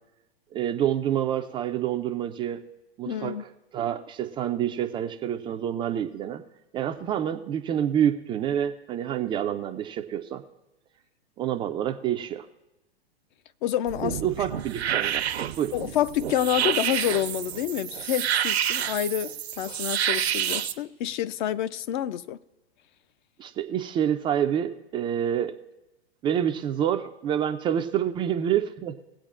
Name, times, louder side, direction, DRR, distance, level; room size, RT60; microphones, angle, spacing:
voice 1, 0.5-2.6 3.0-3.4 3.7-6.4 6.7-10.4 11.4-12.5 14.0-15.7 23.4-25.5 26.2-29.0, right 10 dB, 15° right, 0.3 m, -27 dB
voice 2, 3.1-3.4 13.6-14.2 15.7-22.4, left 11 dB, 50° left, 0.5 m, -28 dB
sound 1, 13.9-20.7, right 10 dB, 80° right, 0.8 m, -29 dB
21.5 x 8.0 x 2.4 m
hypercardioid pair, 115°, 31 cm